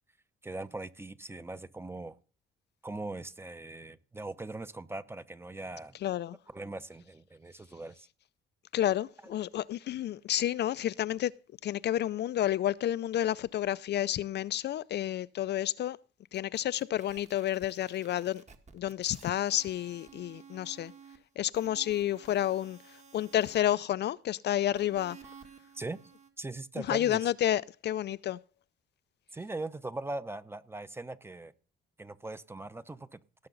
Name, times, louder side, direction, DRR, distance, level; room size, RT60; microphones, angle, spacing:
voice 1, 0.4-2.2 2.8-5.9 6.5-8.1 25.7-26.0 26.4-27.3 29.3-31.5 32.0-33.2, right 2 dB, 10° right, 0.8 m, -40 dB
voice 2, 6.0-6.4 8.7-11.3 11.6-16.0 16.3-18.4 18.7-20.9 21.4-22.8 23.1-25.2 26.9-28.4, left 12 dB, 60° left, 0.4 m, -30 dB
sound 1, 16.3-21.2 21.5-23.6 24.7-26.3, right 6 dB, 35° right, 1.6 m, -54 dB
18.0 x 6.7 x 3.9 m
cardioid pair, 90°, 20 cm